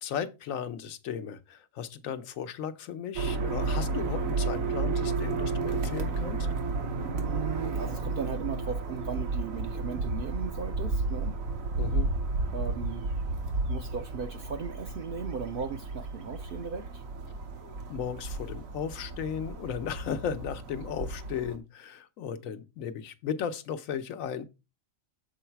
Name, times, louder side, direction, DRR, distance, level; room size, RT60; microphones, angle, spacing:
voice 1, 0.0-6.5 11.8-12.1 17.6-24.4, left 8 dB, 85° left, 1.2 m, -36 dB
sound 1, 3.1-21.6, right 3 dB, 85° right, 1.4 m, -32 dB
voice 2, 7.2-11.4 12.5-13.1 13.7-17.0, right 6 dB, 60° right, 0.6 m, -37 dB
7.0 x 3.9 x 4.5 m
omnidirectional pair, 1.4 m